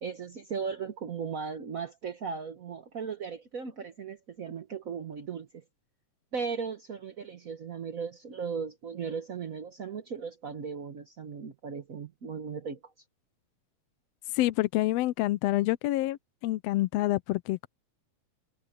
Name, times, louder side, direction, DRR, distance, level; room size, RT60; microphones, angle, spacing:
voice 1, 0.0-5.6 6.3-12.8, right 6 dB, 50° right, 1.0 m, -37 dB
voice 2, 14.3-16.2 16.4-17.7, left 16 dB, 75° left, 1.6 m, -27 dB
omnidirectional pair, 3.3 m